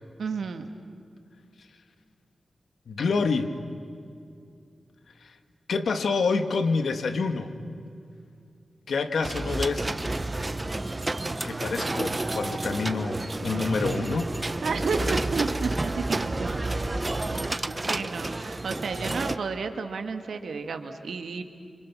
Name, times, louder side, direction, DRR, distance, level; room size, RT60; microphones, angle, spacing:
voice 1, 0.2-0.7 14.6-16.6 17.8-21.4, right 5 dB, 80° right, 7 dB, 1.7 m, -32 dB
voice 2, 2.9-3.6 5.2-5.4 5.7-7.6 8.9-9.9 11.4-14.3, left 4 dB, 80° left, 8 dB, 1.8 m, -27 dB
sound 1, 9.2-19.4, right 2 dB, 25° right, 0.8 m, -30 dB
30.0 x 27.0 x 6.1 m, 2.4 s
wide cardioid pair, 90°, 0 cm